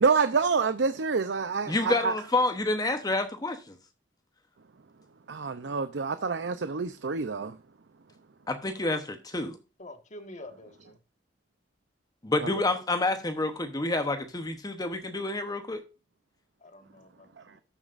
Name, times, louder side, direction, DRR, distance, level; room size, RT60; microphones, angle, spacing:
voice 1, 0.0-2.1 5.3-7.6 12.4-12.5, right 5 dB, 80° right, 0.6 m, -27 dB
voice 2, 1.7-3.7 8.5-9.6 12.2-15.8, left 2 dB, 20° left, 0.9 m, -28 dB
voice 3, 9.8-11.0 16.6-17.6, left 1 dB, 40° left, 1.5 m, -47 dB
13.0 x 7.3 x 2.5 m
head